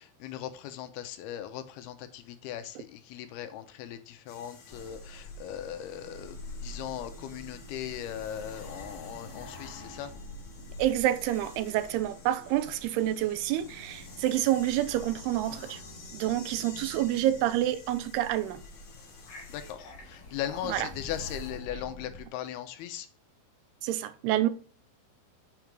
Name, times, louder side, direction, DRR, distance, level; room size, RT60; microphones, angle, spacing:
voice 1, 0.0-10.1 19.5-23.1, left 11 dB, 85° left, 2.7 m, -39 dB
sound 1, 4.3-19.7, left 5 dB, 60° left, 1.4 m, -52 dB
sound 2, 4.7-22.3, left 1 dB, 40° left, 3.4 m, -47 dB
sound 3, 5.9-17.7, right 3 dB, 50° right, 0.8 m, -53 dB
voice 2, 10.8-15.8 16.1-18.6 20.7-20.9 23.8-24.5, right 13 dB, 90° right, 2.6 m, -28 dB
8.3 x 4.7 x 5.2 m
omnidirectional pair, 4.6 m